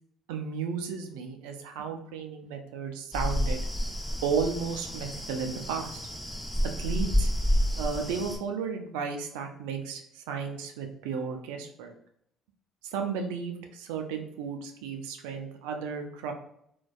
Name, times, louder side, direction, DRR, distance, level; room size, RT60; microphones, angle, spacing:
voice 1, 0.3-3.6 4.2-6.0 6.8-7.3 7.7-12.0 12.8-16.3, right 6 dB, 85° right, 4 dB, 0.3 m, -33 dB
sound 1, 3.1-8.4, equal, 5° left, 0.5 m, -29 dB
2.5 x 2.2 x 2.3 m, 0.71 s
supercardioid pair, 70°, 0 cm